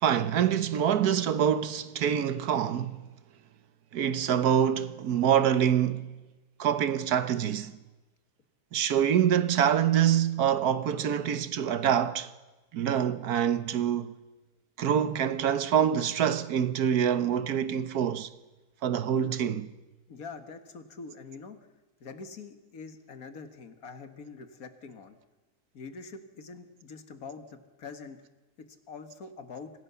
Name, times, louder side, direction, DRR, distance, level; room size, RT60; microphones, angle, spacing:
voice 1, 0.0-3.0 3.9-6.1 6.6-7.8 8.7-12.3 12.7-14.2 14.8-18.3 18.8-19.7, right 9 dB, 85° right, 1.5 m, -25 dB
voice 2, 20.1-21.7 22.0-25.2 25.7-28.2 28.6-29.7, left 4 dB, 70° left, 2.0 m, -44 dB
25.5 x 16.0 x 6.9 m
omnidirectional pair, 1.6 m